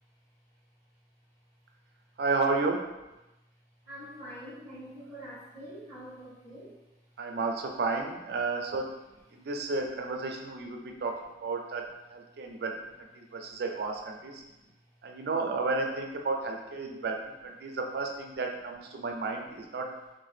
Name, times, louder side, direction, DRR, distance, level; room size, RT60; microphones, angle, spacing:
voice 1, 2.2-2.9 7.2-8.9 9.3-11.1 11.4-11.8 12.1-14.4 15.0-19.9, right 3 dB, 60° right, 3 dB, 0.4 m, -32 dB
voice 2, 3.8-6.8 9.3-9.5 10.8-11.0 14.4-14.7, equal, 30° left, -17 dB, 1.3 m, -46 dB
2.7 x 2.1 x 3.3 m, 1.0 s
head